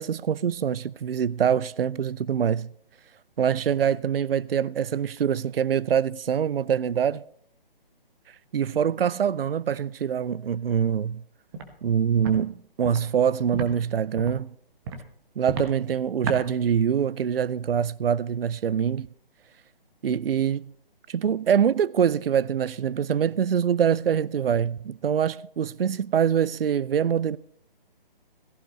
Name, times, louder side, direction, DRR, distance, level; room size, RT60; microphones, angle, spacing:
voice 1, 0.0-2.7 3.4-7.2 8.5-11.2 11.8-14.5 15.4-19.1 20.0-20.7 21.1-27.4, right 8 dB, 75° right, 0.5 m, -24 dB
Walk footsteps, 11.5-11.7 12.2-12.4 12.8-13.0 13.5-13.7 14.1-14.4 14.8-15.0 15.4-15.7 16.2-16.4, right 4 dB, 25° right, 1.3 m, -32 dB
16.0 x 14.5 x 3.1 m
figure-of-eight pair, 145°, 29 cm